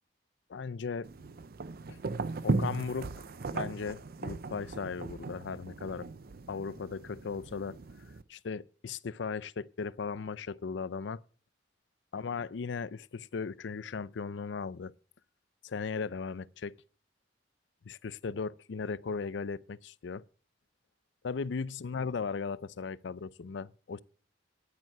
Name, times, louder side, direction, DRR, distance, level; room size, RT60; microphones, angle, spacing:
voice 1, 0.5-1.1 1.9-2.0 2.4-3.2 3.5-6.1 6.5-7.8 8.3-11.2 12.1-14.9 15.6-16.7 17.9-20.2 21.2-24.0, left 5 dB, 70° left, 0.5 m, -37 dB
sound 1, 1.0-8.2, right 3 dB, 55° right, 0.6 m, -37 dB
10.5 x 9.2 x 5.9 m
head